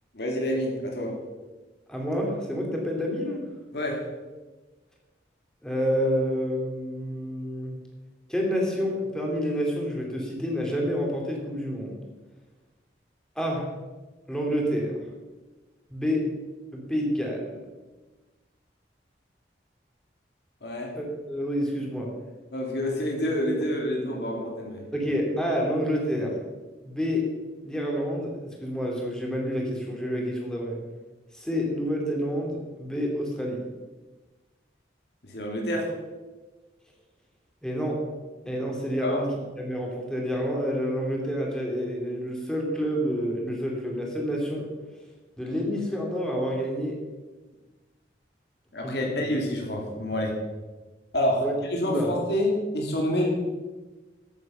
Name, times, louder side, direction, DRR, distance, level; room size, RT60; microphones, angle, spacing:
voice 1, 0.1-1.2 3.7-4.1 20.6-21.0 22.5-24.9 35.2-35.9 39.0-39.2 48.7-50.3 51.1-53.3, left 1 dB, 65° left, 0 dB, 2.5 m, -28 dB
voice 2, 1.9-3.4 5.6-7.7 8.3-11.9 13.4-13.7 14.3-14.9 15.9-16.2 16.7-17.4 20.9-22.1 24.9-26.3 26.8-27.2 27.6-30.8 31.3-33.6 37.6-38.0 38.5-39.3 39.6-44.7 45.4-46.9 48.8-49.1 51.4-51.5 51.9-52.1, equal, 5° left, -1 dB, 2.6 m, -28 dB
13.0 x 8.3 x 5.5 m, 1.2 s
head